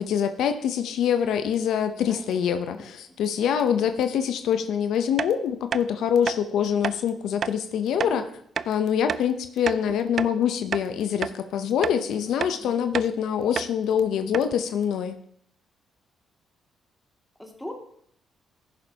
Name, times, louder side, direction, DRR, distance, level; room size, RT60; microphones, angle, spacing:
voice 1, 0.0-8.2 8.7-15.2, left 8 dB, 80° left, 8 dB, 0.7 m, -25 dB
voice 2, 2.1-2.4 2.7-2.9 8.0-8.3 11.9-12.8 17.4-17.7, left 1 dB, 5° left, 1 dB, 2.2 m, -41 dB
sound 1, 5.2-5.3 5.7-5.8 6.2-6.4 6.8-7.0 7.4-7.6 8.0-8.1 8.6-8.7 9.1-9.3 9.7-10.4 10.7-10.9 11.2-11.4 11.8-12.0 12.4-12.6 12.9-13.1 13.6-13.7 14.0-14.1 14.3-14.5, right 7 dB, 55° right, 0.3 m, -30 dB
15.5 x 6.9 x 2.8 m, 0.66 s
cardioid pair, 90°, 0 cm